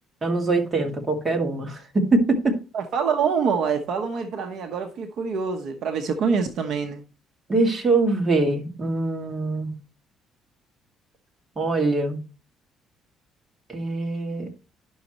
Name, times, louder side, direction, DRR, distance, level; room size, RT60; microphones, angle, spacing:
voice 1, 0.2-2.5 7.5-9.7 11.6-12.2 13.7-14.5, right 3 dB, 25° right, 2.2 m, -23 dB
voice 2, 2.7-7.0, right 6 dB, 60° right, 1.0 m, -25 dB
11.0 x 6.4 x 3.0 m
cardioid pair, 130°, 0 cm